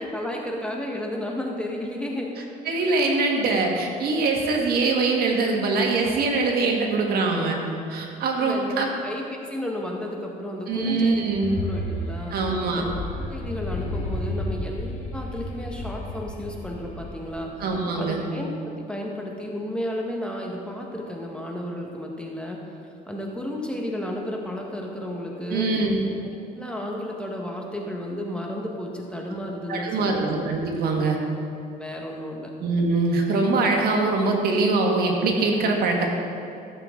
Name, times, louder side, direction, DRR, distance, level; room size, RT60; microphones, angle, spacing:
voice 1, 0.0-2.3 8.4-11.2 11.6-12.4 12.7-12.8 13.3-17.6 17.9-22.6 23.1-25.7 26.6-30.2 31.8-32.5, left 1 dB, 5° left, -1 dB, 1.4 m, -32 dB
voice 2, 2.6-7.6 7.9-9.0 10.7-11.5 12.3-12.9 17.6-18.2 25.5-26.0 29.7-31.2 32.6-36.1, right 3 dB, 65° right, 0 dB, 1.7 m, -23 dB
sound 1, 11.2-17.5, left 1 dB, 45° left, 2.5 m, -32 dB
15.0 x 7.4 x 3.8 m, 2.7 s
cardioid pair, 110°, 17 cm